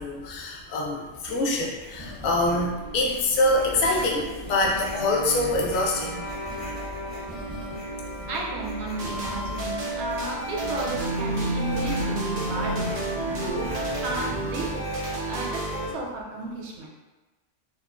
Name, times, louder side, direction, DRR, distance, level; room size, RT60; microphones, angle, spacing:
voice 1, 0.0-6.3, left 2 dB, 60° left, -1 dB, 0.7 m, -25 dB
sound 1, 1.3-2.7 3.0-8.0 8.3-9.8 10.1-15.9, left 1 dB, 25° left, 0.4 m, -42 dB
sound 2, 1.8-14.8, equal, 90° right, 1.5 m, -34 dB
voice 2, 8.3-12.9 13.3-13.7 14.0-14.7 15.2-16.9, right 3 dB, 70° right, -1 dB, 0.8 m, -33 dB
sound 3, 9.0-15.9, right 2 dB, 55° right, 0.5 m, -32 dB
2.9 x 2.1 x 2.4 m, 1.2 s
omnidirectional pair, 1.2 m